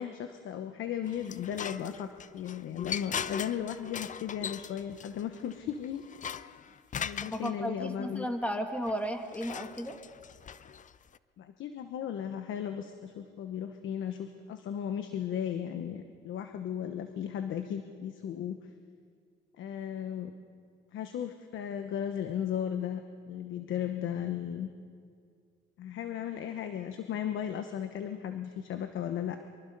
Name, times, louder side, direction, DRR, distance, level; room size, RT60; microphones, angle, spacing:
voice 1, 0.0-6.0 7.0-8.3 11.4-18.6 19.6-20.3 20.9-23.0 23.3-24.7 25.8-29.4, left 9 dB, 75° left, 8 dB, 1.1 m, -36 dB
sound 1, 1.0-7.5 8.8-11.2, left 7 dB, 40° left, 0.6 m, -40 dB
voice 2, 7.3-10.0, equal, 5° left, 4 dB, 2.3 m, -34 dB
24.5 x 23.5 x 5.4 m, 2.1 s
cardioid pair, 90°, 20 cm